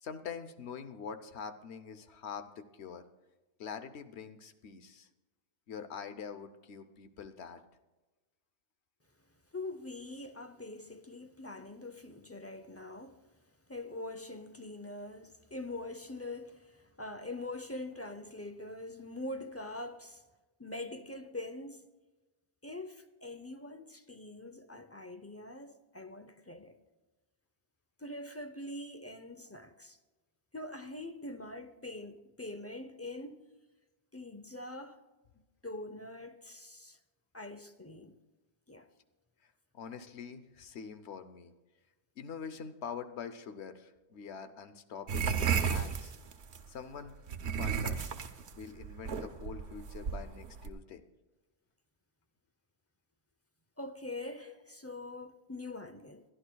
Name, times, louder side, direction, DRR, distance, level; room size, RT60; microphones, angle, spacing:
voice 1, 0.0-3.0 3.6-5.1 5.7-7.6 39.7-41.5 42.2-46.1 46.7-47.1 47.6-48.1 48.6-51.0, left 6 dB, 85° left, 1.1 m, -44 dB
voice 2, 9.5-13.2 13.7-20.2 20.6-21.8 22.6-26.8 28.0-30.0 30.5-33.5 34.1-35.0 35.3-37.0 37.3-38.2 38.7-38.9 53.8-56.2, left 2 dB, 20° left, 0.4 m, -44 dB
sound 1, 45.1-46.6 47.3-50.7, right 6 dB, 85° right, 1.1 m, -33 dB
22.0 x 11.5 x 2.3 m
omnidirectional pair, 1.1 m